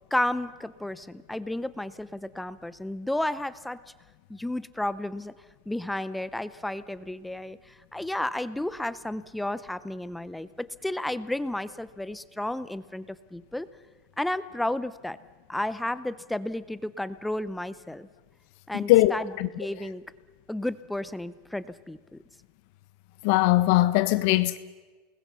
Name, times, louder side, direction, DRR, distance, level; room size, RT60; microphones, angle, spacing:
voice 1, 0.1-3.8 4.3-5.3 5.7-10.5 10.8-13.7 14.2-15.2 15.5-18.1 18.7-19.3 19.6-20.0 20.5-22.0, left 1 dB, 5° left, 0.6 m, -32 dB
voice 2, 18.7-19.5 23.2-24.6, left 17 dB, 60° left, 0.8 m, -21 dB
28.5 x 20.5 x 5.6 m
supercardioid pair, 150°, 0 cm